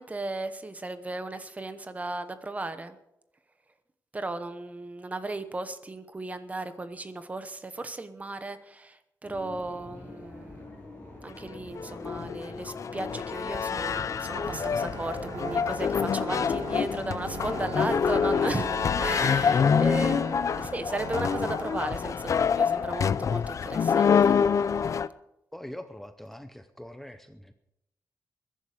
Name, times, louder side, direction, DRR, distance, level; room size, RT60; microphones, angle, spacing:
voice 1, 0.0-3.0 4.1-9.0 9.2-10.6 11.2-18.7 19.0-24.4, right 2 dB, 20° right, 11 dB, 1.0 m, -35 dB
sound 1, 9.2-18.1, left 2 dB, 25° left, 6.9 m, -46 dB
sound 2, 11.5-25.1, left 6 dB, 50° left, 0.5 m, -26 dB
sound 3, 14.4-21.8, right 5 dB, 70° right, 1.6 m, -41 dB
voice 2, 25.5-27.5, left 1 dB, 5° left, 8 dB, 0.7 m, -43 dB
21.5 x 11.0 x 4.9 m, 0.84 s
wide cardioid pair, 175°, 7 cm